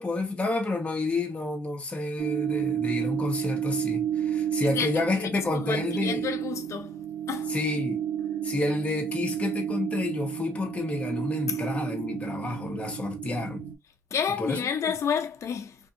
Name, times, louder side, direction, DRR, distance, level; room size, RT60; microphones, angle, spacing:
voice 1, 0.0-6.3 7.5-8.0 8.4-13.6 14.4-14.9, left 2 dB, 25° left, 1.0 m, -29 dB
sound 1, 2.2-13.7, right 10 dB, 90° right, 0.8 m, -31 dB
voice 2, 4.8-6.9 7.3-7.5 11.5-11.6 14.1-15.8, left 7 dB, 75° left, 0.6 m, -30 dB
3.5 x 2.6 x 2.7 m
wide cardioid pair, 135°, 5 cm